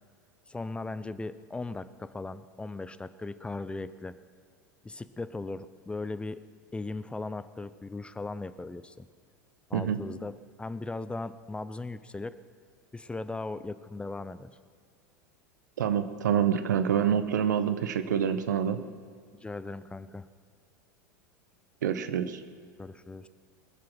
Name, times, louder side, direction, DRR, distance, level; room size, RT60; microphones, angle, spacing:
voice 1, 0.5-4.1 4.8-6.4 6.7-9.1 9.7-12.4 12.9-14.6 19.4-20.3 22.8-23.3, left 3 dB, 10° left, 14 dB, 0.6 m, -38 dB
voice 2, 15.8-18.8 21.8-22.4, right 8 dB, 75° right, 11 dB, 1.0 m, -26 dB
21.5 x 7.7 x 6.2 m, 2.1 s
hypercardioid pair, 85°, 10 cm